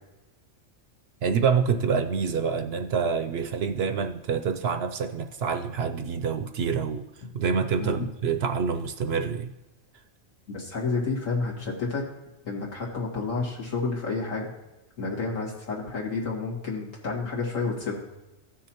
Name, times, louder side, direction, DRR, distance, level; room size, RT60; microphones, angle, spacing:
voice 1, 1.2-7.0 7.3-9.5, right 6 dB, 65° right, 7 dB, 0.7 m, -26 dB
voice 2, 10.5-12.1 12.4-14.5 15.0-18.1, left 4 dB, 85° left, -3 dB, 2.4 m, -30 dB
15.5 x 6.3 x 2.9 m, 1.1 s
omnidirectional pair, 1.3 m